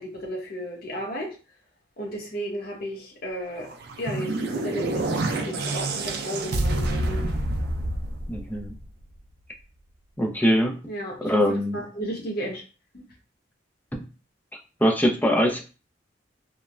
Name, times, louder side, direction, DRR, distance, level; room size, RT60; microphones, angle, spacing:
voice 1, 0.0-1.4 2.0-7.4 10.9-12.6 12.9-13.1, equal, 55° left, -1 dB, 0.9 m, -34 dB
sound 1, 3.7-9.0, right 2 dB, 60° right, 0.4 m, -28 dB
voice 2, 8.3-8.7 10.2-10.8 11.2-11.8 13.9-14.0 14.8-15.6, equal, 10° left, 2 dB, 0.4 m, -22 dB
3.0 x 2.1 x 2.4 m, 0.34 s
head